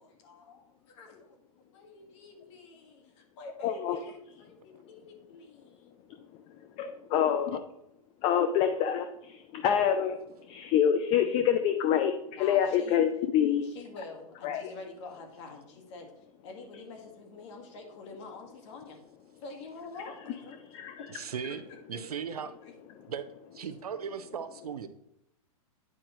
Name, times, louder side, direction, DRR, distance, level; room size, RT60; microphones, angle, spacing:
voice 1, 0.0-1.4 1.7-5.9 12.4-13.0 13.6-16.1 16.4-19.0 19.4-20.6 20.9-21.0 21.9-22.0, left 3 dB, 50° left, 3 dB, 1.7 m, -47 dB
voice 2, 3.6-4.0 6.8-7.6 8.2-10.2 10.5-13.7 14.4-14.7 20.8-20.9, left 9 dB, 30° left, 8 dB, 0.5 m, -26 dB
voice 3, 21.1-21.6 21.9-22.5 23.1-23.3 23.6-24.9, right 7 dB, 85° right, 10 dB, 0.8 m, -37 dB
9.8 x 4.9 x 3.0 m, 0.79 s
hypercardioid pair, 130°, 19 cm